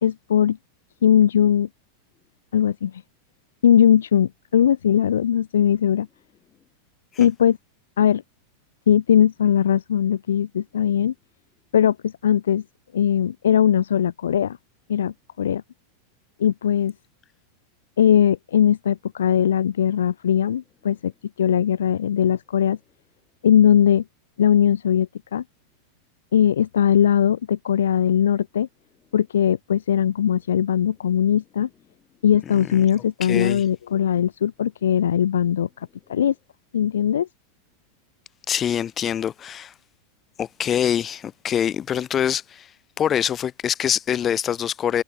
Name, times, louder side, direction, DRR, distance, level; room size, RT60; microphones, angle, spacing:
voice 1, 0.0-0.6 1.0-1.7 2.5-2.9 3.6-6.1 7.2-7.6 8.0-8.2 8.9-11.1 11.7-12.6 12.9-14.6 14.9-15.6 16.4-16.9 18.0-21.1 21.4-22.8 23.4-24.0 24.4-25.4 26.3-28.7 29.1-31.7 32.2-36.3 36.7-37.3, left 9 dB, 65° left, 1.3 m, -20 dB
voice 2, 32.5-32.8 33.2-33.6 38.5-39.7 40.4-42.7 43.0-45.0, left 9 dB, 25° left, 4.6 m, -24 dB
figure-of-eight pair, 90°, 0 cm